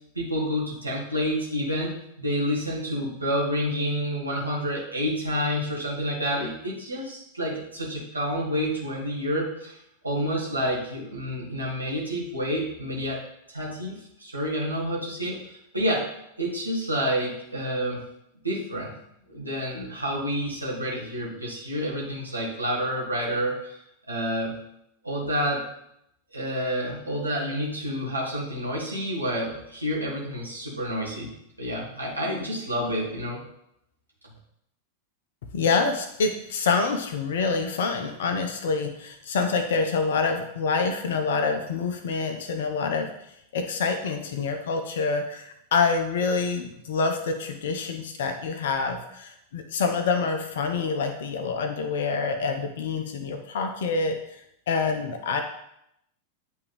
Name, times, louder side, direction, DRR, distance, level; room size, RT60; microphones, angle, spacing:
voice 1, 0.1-9.8 10.0-13.2 13.5-16.1 16.4-18.0 18.4-18.9 19.3-23.8 24.1-24.5 25.0-25.6 26.3-31.3 31.6-33.4, equal, 80° right, -4 dB, 1.4 m, -29 dB
voice 2, 35.5-43.1 43.5-55.4, left 4 dB, 60° left, 5 dB, 0.6 m, -26 dB
8.2 x 3.5 x 3.4 m, 0.78 s
figure-of-eight pair, 90°, 0 cm